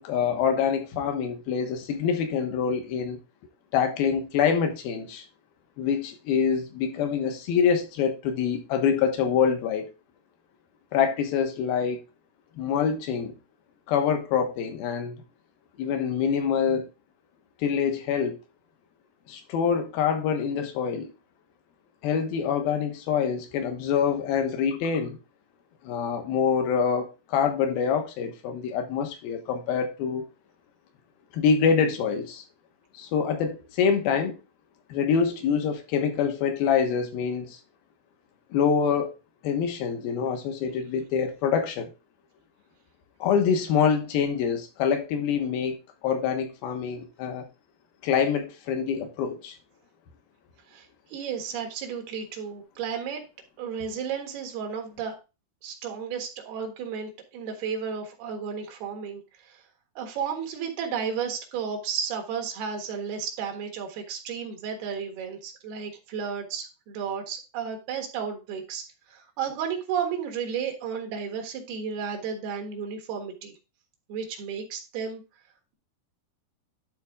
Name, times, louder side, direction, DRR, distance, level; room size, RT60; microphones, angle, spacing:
voice 1, 0.0-3.2 3.7-5.2 5.8-9.9 10.9-12.0 12.6-13.3 13.9-15.1 15.8-16.9 17.6-18.4 19.3-21.1 22.0-25.2 25.8-30.3 31.3-32.4 32.9-34.4 34.9-37.6 38.5-39.1 39.4-41.9 43.2-45.8 46.0-47.4 48.0-49.6, left 7 dB, 75° left, 3.0 m, -25 dB
voice 2, 50.7-53.2 53.6-55.2 55.6-59.6 60.0-73.5 74.1-75.2, right 7 dB, 75° right, 3.4 m, -33 dB
11.5 x 4.2 x 3.6 m
omnidirectional pair, 4.6 m